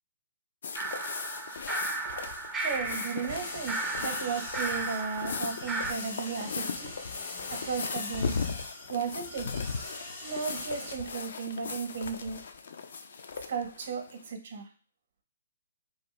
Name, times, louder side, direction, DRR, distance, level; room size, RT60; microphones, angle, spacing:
sound 1, 0.6-14.3, left 5 dB, 65° left, 0.3 m, -38 dB
sound 2, 0.8-5.9, right 3 dB, 10° right, 0.3 m, -35 dB
voice 1, 2.6-6.9 7.5-8.5 8.9-9.5 10.2-12.4 13.5-14.7, right 5 dB, 60° right, 3 dB, 0.6 m, -35 dB
sound 3, 3.3-10.9, left 2 dB, 50° left, 0.8 m, -43 dB
2.6 x 2.2 x 3.1 m, 0.41 s
hypercardioid pair, 140°, 0 cm